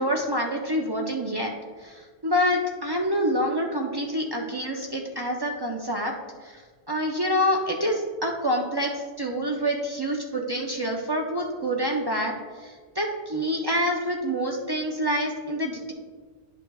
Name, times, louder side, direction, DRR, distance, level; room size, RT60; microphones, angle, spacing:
voice 1, 0.0-1.5 1.8-6.1 6.4-12.3 12.6-15.9, equal, 30° right, 0 dB, 0.5 m, -27 dB
10.5 x 6.2 x 2.3 m, 1.5 s
omnidirectional pair, 1.1 m